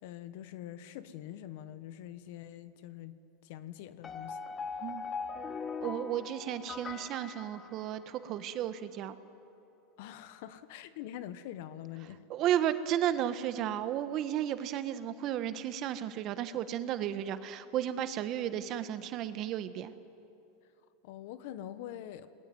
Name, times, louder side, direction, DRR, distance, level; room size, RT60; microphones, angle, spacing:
voice 1, 0.0-3.2 3.4-4.4 10.0-12.3 21.0-22.3, left 12 dB, 65° left, 12 dB, 1.3 m, -44 dB
sound 1, 4.0-8.3, left 5 dB, 25° left, 1.2 m, -41 dB
voice 2, 5.8-9.2 12.3-19.9, right 11 dB, 45° right, 11 dB, 1.3 m, -33 dB
28.5 x 21.5 x 9.3 m, 2.9 s
supercardioid pair, 130°, 0 cm